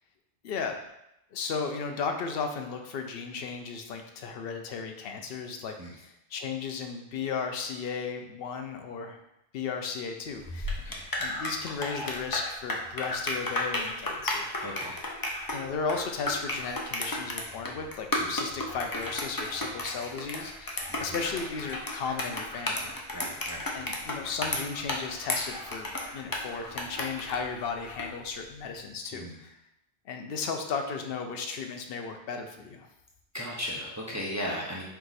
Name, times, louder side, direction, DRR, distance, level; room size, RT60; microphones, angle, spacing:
voice 1, 0.4-0.7 1.3-9.2 9.5-10.8 11.2-14.5 15.5-22.9 23.7-29.5 30.1-32.9, left 5 dB, 65° left, 4 dB, 0.8 m, -35 dB
sound 1, 10.4-28.1, left 1 dB, 30° left, 0.4 m, -34 dB
voice 2, 14.6-15.0 18.2-18.3 20.9-21.1 23.1-23.7 29.1-29.4 33.3-34.8, equal, 20° right, -4 dB, 0.5 m, -36 dB
4.6 x 2.5 x 4.0 m, 0.84 s
omnidirectional pair, 1.1 m